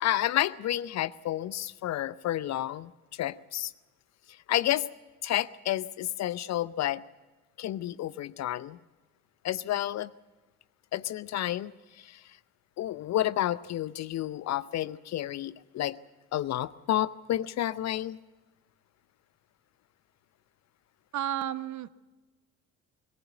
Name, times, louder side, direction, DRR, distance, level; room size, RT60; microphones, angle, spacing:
voice 1, 0.0-3.7 4.5-4.9 5.2-7.0 7.6-8.8 9.4-10.1 10.9-11.7 12.0-12.2 12.8-16.0 16.3-18.2, left 13 dB, 40° left, 18 dB, 0.6 m, -30 dB
voice 2, 21.1-21.9, right 11 dB, 40° right, 16 dB, 1.0 m, -32 dB
22.0 x 15.5 x 9.1 m, 1.1 s
figure-of-eight pair, 50°, 43 cm